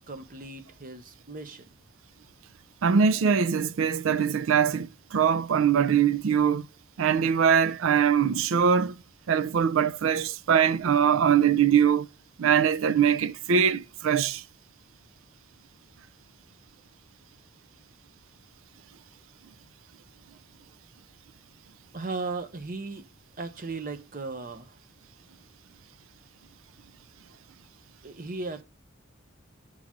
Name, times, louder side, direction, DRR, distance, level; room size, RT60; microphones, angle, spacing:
voice 1, 0.1-1.7 20.6-20.7 21.9-23.0 23.4-24.8 28.0-28.6, right 3 dB, 40° right, 0.8 m, -36 dB
voice 2, 2.8-6.7 7.0-9.0 9.3-12.1 12.4-14.4, right 7 dB, 70° right, 0.4 m, -22 dB
6.2 x 3.9 x 5.9 m
head